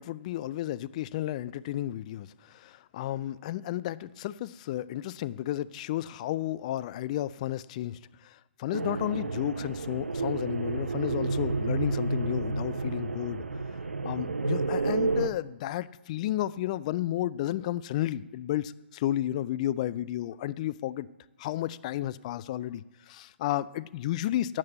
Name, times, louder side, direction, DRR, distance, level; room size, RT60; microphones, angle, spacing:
voice 1, 0.0-13.4 14.0-21.1 21.4-24.6, left 13 dB, 35° left, 18 dB, 0.3 m, -32 dB
sound 1, 8.7-15.3, right 3 dB, 75° right, 0.6 m, -30 dB
8.4 x 7.4 x 8.4 m, 1.1 s
figure-of-eight pair, 125°, 7 cm